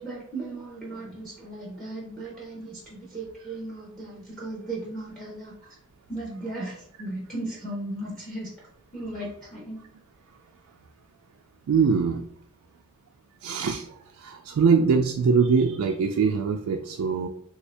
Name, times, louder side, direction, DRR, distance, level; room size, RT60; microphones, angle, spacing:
voice 1, 0.0-5.7 6.1-8.5 8.9-9.8, right 2 dB, ahead, -4 dB, 0.7 m, -36 dB
voice 2, 11.7-12.3 13.4-13.8 14.2-17.3, right 5 dB, 70° right, 2 dB, 0.3 m, -22 dB
3.1 x 2.7 x 3.2 m, 0.68 s
head